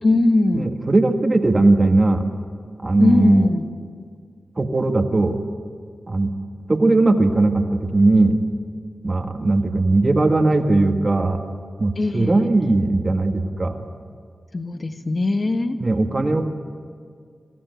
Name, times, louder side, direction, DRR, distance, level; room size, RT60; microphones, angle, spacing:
voice 1, 0.0-0.7 3.0-3.7 12.0-12.5 14.5-15.8, left 2 dB, 45° left, 7 dB, 1.4 m, -20 dB
voice 2, 0.5-2.2 2.8-3.5 4.6-5.4 6.1-6.3 6.7-8.4 9.0-11.4 11.8-13.8 15.8-16.5, right 2 dB, 35° right, 5 dB, 1.7 m, -18 dB
26.0 x 17.0 x 9.4 m, 2.1 s
wide cardioid pair, 70°, 0 cm